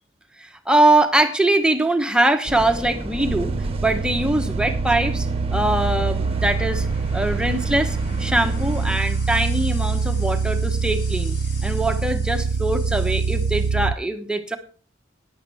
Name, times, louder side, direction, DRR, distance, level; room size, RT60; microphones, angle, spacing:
voice 1, 0.4-6.9 7.1-14.6, right 1 dB, 5° right, 6 dB, 1.0 m, -22 dB
sound 1, 2.5-9.0, right 1 dB, 30° right, 1.0 m, -31 dB
sound 2, 3.2-13.9, right 5 dB, 65° right, 0.4 m, -24 dB
sound 3, 3.7-13.7, left 1 dB, 60° left, 5.5 m, -43 dB
14.0 x 10.5 x 3.4 m, 0.39 s
head